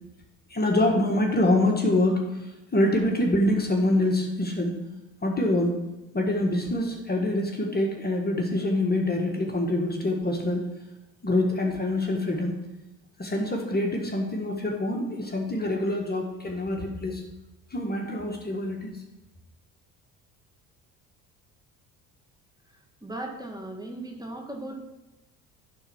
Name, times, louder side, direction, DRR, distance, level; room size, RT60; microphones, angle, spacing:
voice 1, 0.5-4.9 5.2-5.7 6.1-10.6 11.2-12.5 13.2-17.2 17.7-19.0, left 1 dB, 25° left, 1 dB, 1.5 m, -25 dB
voice 2, 22.7-24.7, right 1 dB, 10° right, 1 dB, 1.7 m, -38 dB
10.5 x 4.1 x 6.3 m, 0.98 s
supercardioid pair, 70°, 41 cm